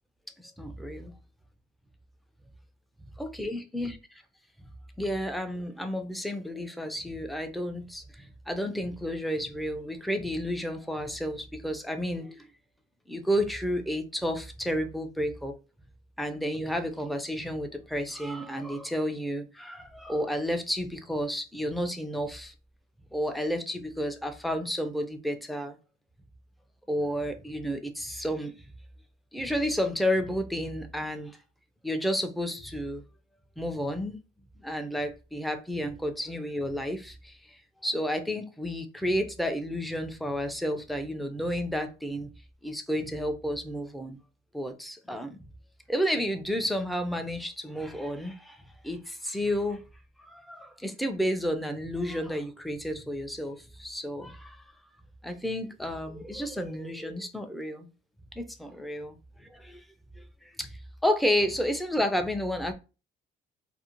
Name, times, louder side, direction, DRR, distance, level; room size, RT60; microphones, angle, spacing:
voice 1, 0.4-1.2 3.2-4.0 5.0-12.5 13.1-15.5 16.2-22.5 23.1-25.8 26.9-28.5 29.3-31.4 31.8-33.0 33.6-34.2 34.6-42.3 42.6-44.2 44.5-45.4 45.9-48.6 48.8-49.8 50.2-54.7 55.2-57.9 58.4-59.8 60.2-62.7, equal, ahead, 0.4 m, -31 dB
2.5 x 2.0 x 2.8 m
cardioid pair, 90°, 20 cm